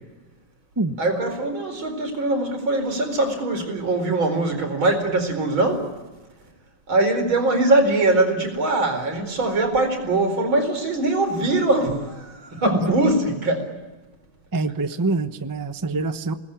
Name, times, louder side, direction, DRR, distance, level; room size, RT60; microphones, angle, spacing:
voice 1, 1.0-6.0 6.9-13.7, right 2 dB, 90° right, 5 dB, 5.3 m, -22 dB
voice 2, 14.5-16.3, right 3 dB, 15° right, 10 dB, 0.6 m, -25 dB
28.0 x 19.5 x 10.0 m, 1.2 s
omnidirectional pair, 2.1 m